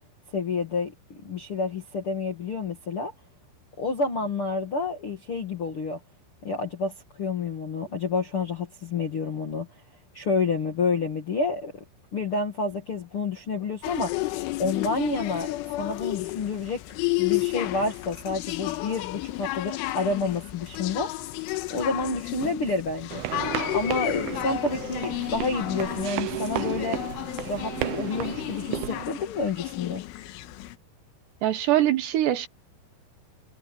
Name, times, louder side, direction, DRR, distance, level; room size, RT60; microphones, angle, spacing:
voice 1, 0.3-3.1 3.8-6.0 6.4-9.7 10.1-11.7 12.1-14.2 14.6-16.8 17.2-21.1 21.7-23.2 23.7-27.0 27.4-30.0, left 4 dB, 50° left, 1.6 m, -29 dB
sound 1, 13.8-30.8, left 19 dB, 85° left, 3.6 m, -32 dB
sound 2, 23.1-29.0, right 14 dB, 90° right, 2.1 m, -33 dB
voice 2, 31.4-32.5, right 13 dB, 70° right, 3.1 m, -23 dB
omnidirectional pair, 5.7 m